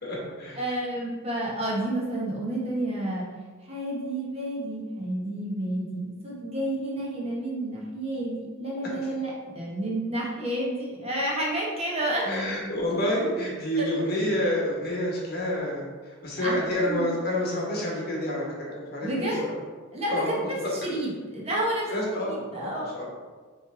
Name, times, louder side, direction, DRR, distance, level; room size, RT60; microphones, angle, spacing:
voice 1, 0.0-0.6 12.3-19.3 20.1-20.5 21.9-22.3 22.6-23.0, left 1 dB, 45° left, -3 dB, 1.5 m, -28 dB
voice 2, 0.6-3.3 3.6-12.3 13.8-13.9 16.4-17.2 19.0-19.5 19.9-23.0, right 1 dB, 30° right, -4 dB, 1.2 m, -30 dB
5.9 x 3.3 x 4.9 m, 1.4 s
head